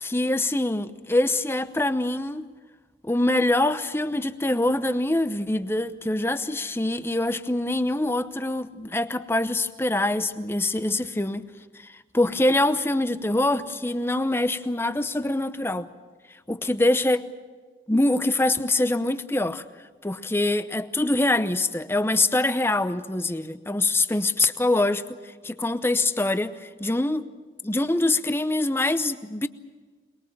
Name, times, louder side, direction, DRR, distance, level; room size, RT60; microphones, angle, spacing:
voice 1, 0.0-2.5 3.0-11.5 12.1-15.9 16.5-17.2 17.9-19.6 20.0-25.0 25.4-27.3 27.6-29.5, left 2 dB, 15° left, 0.8 m, -24 dB
23.0 x 22.0 x 7.4 m
head